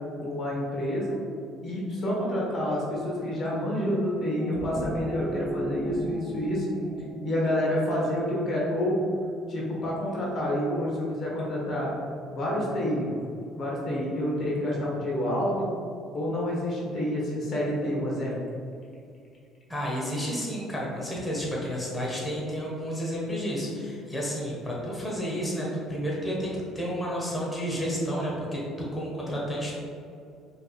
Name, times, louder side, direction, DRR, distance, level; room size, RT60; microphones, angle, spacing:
voice 1, 0.2-1.2 1.6-6.7 7.2-9.0 9.5-11.9 12.3-13.1 13.6-15.7 16.1-18.3, left 1 dB, 50° left, -4 dB, 1.2 m, -28 dB
sound 1, 4.2-8.8, right 1 dB, 25° right, 0.5 m, -35 dB
voice 2, 19.7-26.5 26.7-29.7, equal, 15° left, -5 dB, 1.1 m, -31 dB
4.9 x 3.4 x 2.4 m, 2.4 s
supercardioid pair, 80°, 0 cm